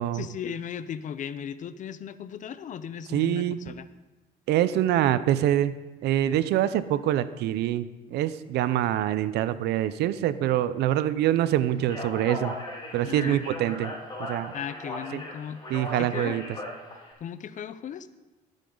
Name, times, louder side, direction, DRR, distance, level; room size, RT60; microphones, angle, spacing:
voice 1, 0.1-3.9 13.0-13.4 14.5-15.6 16.0-16.4 17.2-18.1, left 8 dB, 50° left, 14 dB, 0.7 m, -36 dB
voice 2, 3.1-3.6 4.5-5.7 6.0-12.5 12.9-13.9 14.2-14.5 15.1-15.2 15.7-16.4, right 12 dB, 80° right, 14 dB, 0.7 m, -25 dB
Speech, 11.8-17.1, left 1 dB, 25° left, 4.7 m, -37 dB
20.0 x 9.1 x 3.9 m, 1.1 s
cardioid pair, 110°, 17 cm